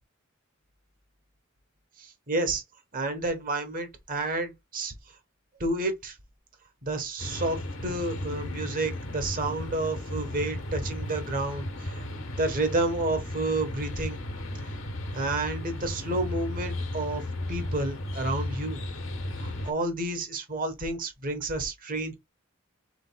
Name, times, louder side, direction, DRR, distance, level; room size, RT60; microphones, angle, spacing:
voice 1, 2.0-2.6 2.9-4.9 5.6-6.2 6.8-12.0 12.3-14.2 14.6-14.7 15.1-17.2 17.5-18.8 19.4-22.1, right 2 dB, 40° right, 1.2 m, -30 dB
sound 1, 7.2-19.7, left 1 dB, 70° left, 1.3 m, -35 dB
5.1 x 3.8 x 2.3 m
head